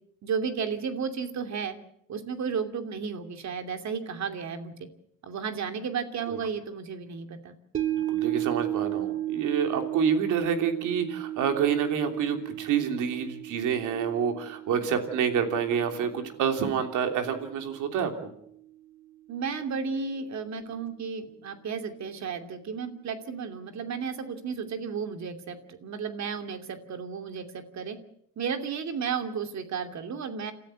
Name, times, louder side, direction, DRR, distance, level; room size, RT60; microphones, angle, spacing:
voice 1, 0.2-1.8 2.1-4.7 5.2-7.5 19.3-28.0 28.4-30.5, right 6 dB, 65° right, 7 dB, 2.8 m, -33 dB
sound 1, 7.7-18.1 18.5-18.6, right 13 dB, 45° right, 1.9 m, -34 dB
voice 2, 8.1-18.1, right 7 dB, 90° right, 6 dB, 3.1 m, -28 dB
29.5 x 13.5 x 7.9 m, 0.73 s
cardioid pair, 90°, 30 cm